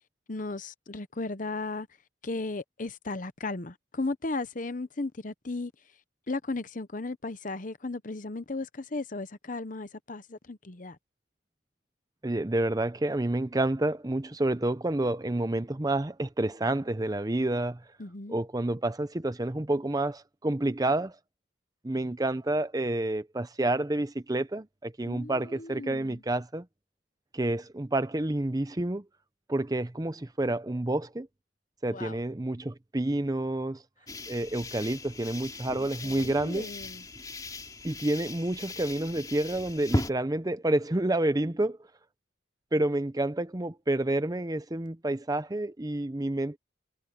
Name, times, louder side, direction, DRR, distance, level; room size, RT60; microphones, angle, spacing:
voice 1, 0.3-1.9 2.2-5.7 6.3-11.0 18.0-18.4 25.0-26.2 31.9-32.2 35.8-37.0, left 3 dB, 45° left, 0.9 m, -36 dB
voice 2, 12.2-17.8 18.3-21.2 21.8-26.7 27.3-29.0 29.5-31.3 31.8-33.8 34.3-36.7 37.8-41.8 42.7-46.6, right 1 dB, 20° right, 0.6 m, -29 dB
sound 1, 34.1-40.1, left 1 dB, 20° left, 3.2 m, -37 dB
head